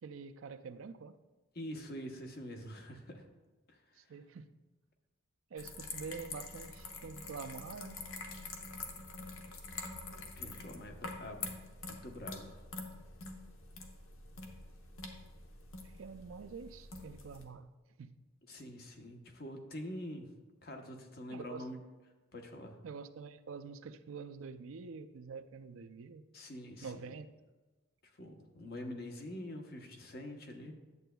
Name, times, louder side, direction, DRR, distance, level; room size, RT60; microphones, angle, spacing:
voice 1, 0.0-1.1 4.0-4.5 5.5-8.1 15.8-17.7 18.0-18.2 21.3-21.6 22.8-26.2 26.8-27.3, right 5 dB, 75° right, 10 dB, 0.4 m, -46 dB
voice 2, 1.5-3.2 3.7-3.8 10.4-11.6 11.8-12.6 18.5-20.3 20.6-21.8 22.3-22.8 26.3-27.1 28.2-30.7, left 1 dB, 50° left, 3 dB, 0.9 m, -45 dB
sound 1, 5.6-17.4, left 3 dB, 85° left, 0.9 m, -46 dB
11.0 x 7.8 x 2.3 m, 1.2 s
head